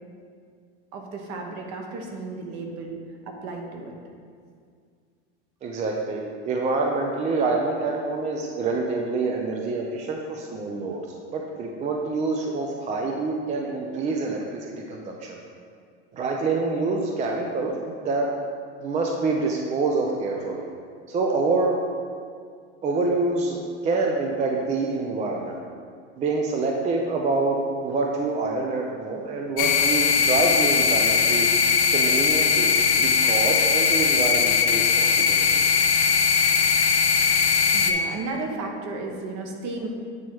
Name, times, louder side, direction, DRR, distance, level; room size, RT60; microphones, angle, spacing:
voice 1, 0.9-3.9 37.7-39.9, right 3 dB, 50° right, 2 dB, 1.0 m, -34 dB
voice 2, 5.6-11.1 11.3-15.4 16.1-18.3 18.8-20.7 21.1-21.8 22.8-25.6 26.2-31.5 31.9-35.6, right 3 dB, 20° right, 0 dB, 0.4 m, -26 dB
sound 1, 29.6-37.9, left 6 dB, 70° left, 0.6 m, -20 dB
8.3 x 3.0 x 4.5 m, 2.1 s
supercardioid pair, 115°, 35 cm